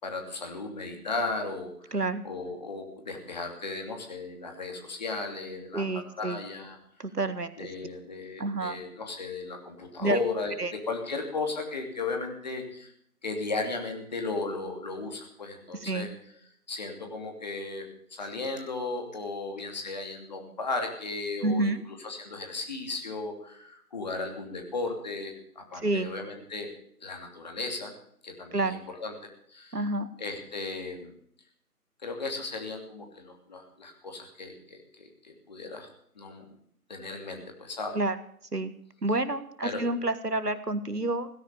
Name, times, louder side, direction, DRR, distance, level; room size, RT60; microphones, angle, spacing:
voice 1, 0.0-2.0 2.2-6.8 7.6-12.9 13.2-16.1 16.7-17.8 18.1-26.7 27.0-27.9 28.2-29.8 30.2-31.1 32.0-35.9 36.2-36.5 36.9-38.0 39.6-39.8, left 3 dB, 25° left, 4 dB, 2.9 m, -35 dB
voice 2, 1.9-2.2 5.7-6.4 7.0-7.5 8.4-8.8 10.0-10.2 10.6-10.7 15.9-16.1 21.4-21.8 25.8-26.1 28.5-28.8 29.7-30.1 37.9-38.2 38.5-38.7 39.0-41.3, right 2 dB, 80° right, 12 dB, 1.8 m, -28 dB
17.5 x 10.0 x 6.9 m, 0.65 s
figure-of-eight pair, 160°, 46 cm